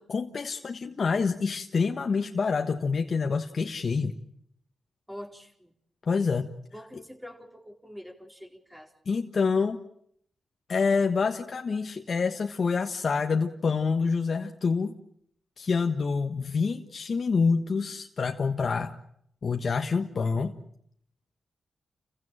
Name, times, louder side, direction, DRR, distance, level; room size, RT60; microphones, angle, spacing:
voice 1, 0.1-4.1 6.1-6.5 9.1-9.8 10.7-14.9 15.6-19.0 19.4-20.6, left 5 dB, 60° left, 5 dB, 1.4 m, -27 dB
voice 2, 5.1-5.7 6.7-8.9, equal, 10° right, 2 dB, 4.5 m, -45 dB
29.5 x 16.0 x 8.9 m, 0.70 s
supercardioid pair, 45°, 0 cm